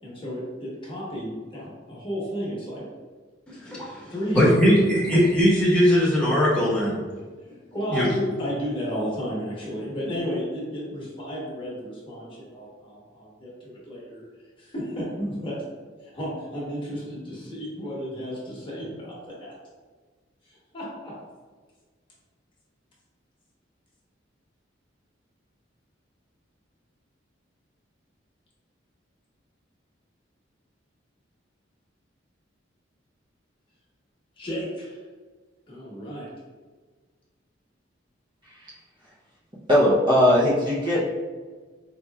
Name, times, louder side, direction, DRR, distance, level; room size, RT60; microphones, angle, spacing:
voice 1, 0.0-2.8 4.1-5.2 7.7-14.2 14.6-15.6 16.0-19.1 19.4-19.5 20.5-21.2 34.4-35.0 35.7-36.3, equal, 25° left, -6 dB, 1.0 m, -32 dB
voice 2, 3.5-7.0 7.9-8.1, equal, 5° left, -8 dB, 1.0 m, -20 dB
voice 3, 39.7-41.1, left 1 dB, 25° right, -8 dB, 0.6 m, -20 dB
4.3 x 2.8 x 2.3 m, 1.4 s
head